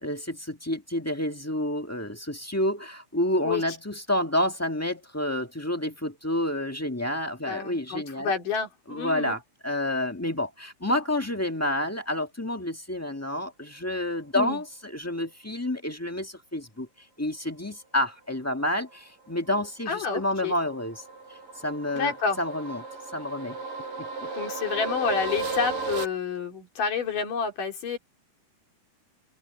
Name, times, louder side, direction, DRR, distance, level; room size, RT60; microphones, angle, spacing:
voice 1, 0.0-8.3 8.9-16.9 17.2-21.0 21.6-22.8 23.1-23.5 24.0-24.3, left 1 dB, 20° left, 0.4 m, -29 dB
voice 2, 7.5-9.3 14.3-14.6 19.9-20.5 21.9-22.4 24.3-28.0, left 5 dB, 75° left, 5.0 m, -29 dB
sound 1, 19.5-26.1, right 4 dB, 90° right, 7.3 m, -35 dB
omnidirectional pair, 3.7 m